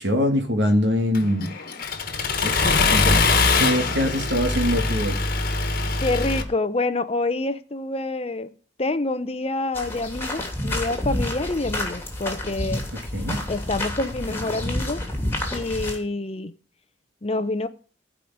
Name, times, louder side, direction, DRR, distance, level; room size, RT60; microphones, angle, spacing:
voice 1, 0.0-1.5 2.4-5.2 13.1-13.4, equal, 60° right, 2.2 m, -23 dB
Accelerating revving vroom, 1.2-6.4, left 3 dB, 50° left, 1.6 m, -22 dB
voice 2, 6.0-8.5 8.8-12.8 13.5-15.0 15.5-16.5 17.2-17.7, left 2 dB, 30° left, 0.7 m, -27 dB
sound 1, 9.7-16.0, left 1 dB, 10° left, 2.9 m, -29 dB
15.0 x 5.1 x 9.4 m
head